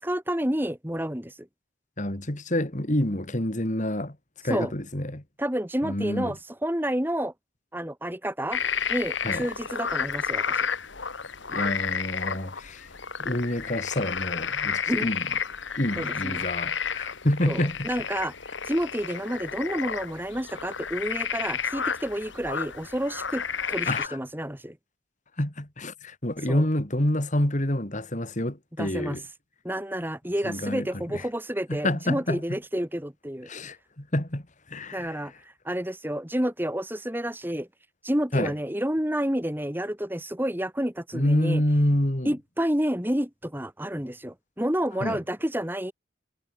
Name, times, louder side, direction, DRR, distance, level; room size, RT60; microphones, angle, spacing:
voice 1, 0.0-1.5 4.5-4.7 5.4-7.3 7.7-8.6 8.9-10.7 14.9-15.1 16.0-16.5 17.5-18.3 18.7-24.8 26.5-26.6 28.8-29.2 29.6-33.5 34.9-35.3 35.6-37.7 38.0-41.6 42.3-45.9, equal, 10° right, 2.1 m, -29 dB
voice 2, 2.0-4.2 4.4-5.2 5.8-6.4 9.2-9.5 11.5-12.9 13.2-15.3 15.8-17.9 23.9-24.2 25.4-29.2 30.4-31.3 31.7-32.4 33.5-35.2 38.3-38.5 41.1-42.3 45.0-45.2, left 1 dB, 40° left, 2.8 m, -28 dB
sound 1, 8.5-24.1, left 7 dB, 65° left, 2.1 m, -31 dB
head